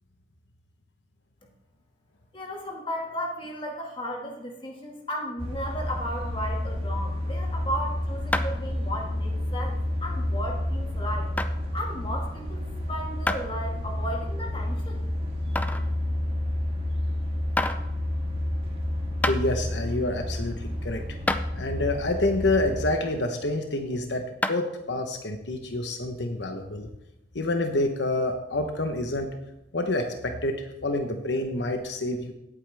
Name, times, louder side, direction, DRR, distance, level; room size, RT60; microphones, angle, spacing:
voice 1, 2.3-11.3 11.7-15.0, equal, 30° left, 0 dB, 2.0 m, -35 dB
sound 1, 5.4-22.9, left 1 dB, 35° right, 2.3 m, -30 dB
sound 2, 8.3-8.7 9.2-9.3 10.1-10.2 11.4-11.5 13.3-13.4 14.0-14.1 15.6-15.9 17.0-17.1 17.6-17.8 18.8-18.9 19.2-19.4 20.7-20.8 21.3-21.5 24.4-24.7, left 2 dB, 10° left, 0.5 m, -27 dB
voice 2, 19.3-21.0 21.6-26.9 27.3-29.3 29.7-32.3, left 2 dB, 70° left, 5 dB, 1.0 m, -28 dB
17.0 x 8.5 x 3.4 m, 0.88 s
head